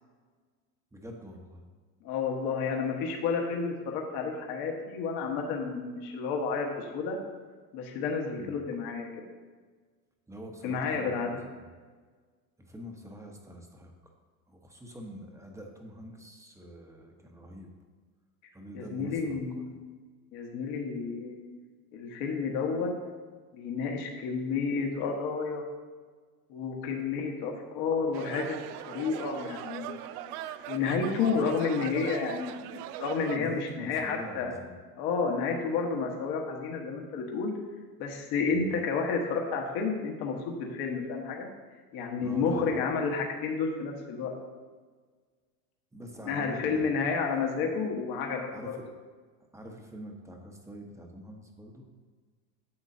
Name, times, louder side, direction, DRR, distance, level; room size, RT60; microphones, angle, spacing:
voice 1, 0.9-1.6 8.4-8.6 10.3-11.3 11.6-11.7 12.6-14.1 14.5-17.7 18.5-19.4 33.3-34.7 38.5-38.7 42.2-42.8 45.9-46.9 47.6-47.7 48.5-48.8 49.5-51.8, equal, 5° right, 2 dB, 0.9 m, -45 dB
voice 2, 2.0-7.2 7.7-9.2 10.6-11.4 18.7-19.8 20.3-21.4 21.9-22.9 23.5-25.6 26.5-28.6 28.8-29.9 30.7-34.5 35.0-37.5 38.0-41.5 41.9-44.3 46.2-48.7, left 5 dB, 55° left, 1 dB, 1.4 m, -31 dB
sound 1, 28.1-33.4, right 12 dB, 80° right, 0.6 m, -40 dB
10.0 x 7.2 x 2.8 m, 1.5 s
supercardioid pair, 120°, 45 cm